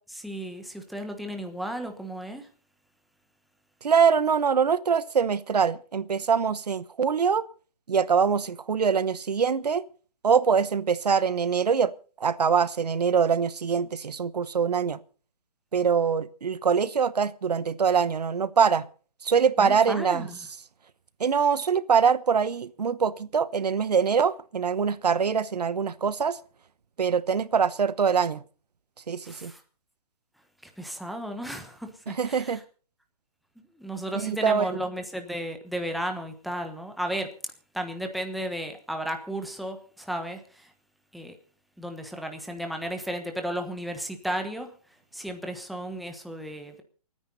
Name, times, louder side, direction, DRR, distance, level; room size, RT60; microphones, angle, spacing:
voice 1, 0.1-2.5 19.6-20.4 29.2-29.6 30.6-32.6 33.6-37.3 37.7-40.7 41.1-41.3 41.8-44.7 45.1-46.8, right 1 dB, ahead, 1.2 m, -34 dB
voice 2, 3.8-7.4 7.9-9.8 10.2-11.9 12.2-15.0 15.7-18.9 19.2-20.3 21.2-26.4 27.0-28.4 29.1-29.5 32.1-32.6 34.1-34.7, right 6 dB, 80° right, 1.0 m, -24 dB
28.0 x 9.7 x 4.1 m
hypercardioid pair, 155°, 20 cm